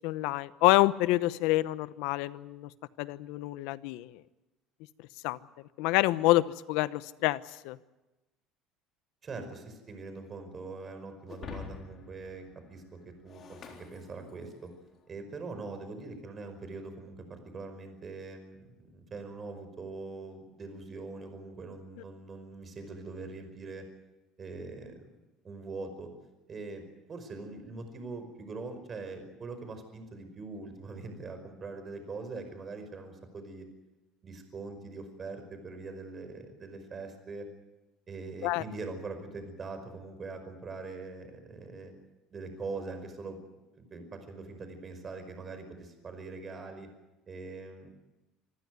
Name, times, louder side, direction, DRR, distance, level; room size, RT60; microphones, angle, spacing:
voice 1, 0.0-2.7 3.0-4.2 5.2-5.4 5.8-7.8 38.4-38.6, left 18 dB, 80° left, 16 dB, 0.9 m, -27 dB
voice 2, 9.2-14.7 15.1-23.9 24.4-25.1 25.4-26.1 26.5-26.8 27.1-33.7 34.2-37.5 38.1-41.9 42.3-43.4 43.8-46.9 47.3-47.9, right 3 dB, 30° right, 8 dB, 5.2 m, -42 dB
Shatter, 11.3-14.8, left 6 dB, 40° left, 3.8 m, -47 dB
26.5 x 15.5 x 9.4 m, 1.1 s
cardioid pair, 125°, 0 cm